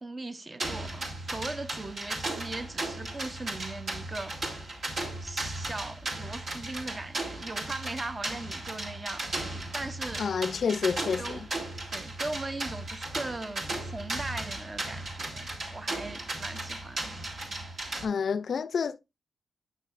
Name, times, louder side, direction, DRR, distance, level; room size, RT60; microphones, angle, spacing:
voice 1, 0.0-4.4 5.2-9.3 9.7-10.2 11.2-11.5 11.9-17.0, right 2 dB, 25° right, 0.7 m, -39 dB
sound 1, 0.6-18.0, right 2 dB, 65° right, 2.3 m, -36 dB
voice 2, 10.2-11.5 18.0-19.0, left 6 dB, 60° left, 0.4 m, -29 dB
8.9 x 6.6 x 2.4 m
cardioid pair, 105°, 0 cm